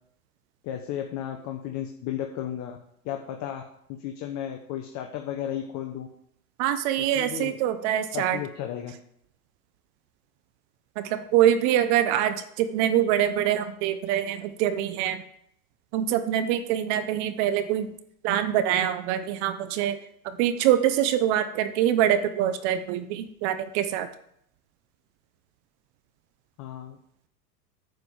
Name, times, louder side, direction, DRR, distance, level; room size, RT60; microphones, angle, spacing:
voice 1, 0.6-2.8 3.0-3.6 3.9-6.1 7.0-7.6 8.1-8.9 26.6-27.0, left 10 dB, 35° left, 4 dB, 1.1 m, -34 dB
voice 2, 6.6-8.4 11.0-15.2 15.9-17.9 18.2-20.0 20.2-24.1, right 11 dB, 45° right, 10 dB, 0.9 m, -24 dB
9.4 x 5.0 x 7.3 m, 0.72 s
hypercardioid pair, 110°, 48 cm